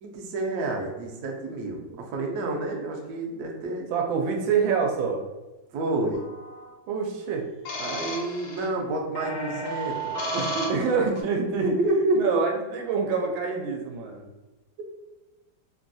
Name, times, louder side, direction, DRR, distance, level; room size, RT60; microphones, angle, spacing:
voice 1, 0.0-1.8 2.1-3.9 5.7-6.2 7.8-10.7 11.6-12.2, right 2 dB, 70° right, 0 dB, 0.9 m, -29 dB
voice 2, 3.9-5.3 6.9-7.5 10.7-11.7 12.2-14.3, right 5 dB, 90° right, 1 dB, 1.3 m, -26 dB
sound 1, 6.1-6.7 7.6-8.7 9.1-11.2, right 1 dB, 65° left, 1.1 m, -33 dB
3.3 x 2.3 x 2.5 m, 1.1 s
omnidirectional pair, 2.1 m